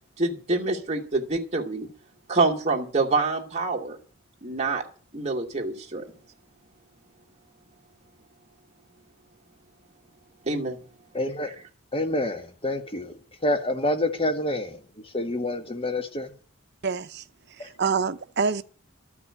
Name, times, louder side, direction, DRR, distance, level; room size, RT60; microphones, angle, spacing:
voice 1, 0.2-1.9 2.3-4.0 4.4-4.8 5.1-6.0 10.4-10.8, right 3 dB, 30° right, 2.4 m, -26 dB
voice 2, 11.1-11.5 11.9-13.1 13.4-14.8 15.1-16.3 17.6-17.7, left 1 dB, 25° left, 1.7 m, -27 dB
voice 3, 16.8-17.2 17.6-18.6, right 5 dB, 50° right, 0.8 m, -26 dB
13.5 x 5.9 x 9.7 m
head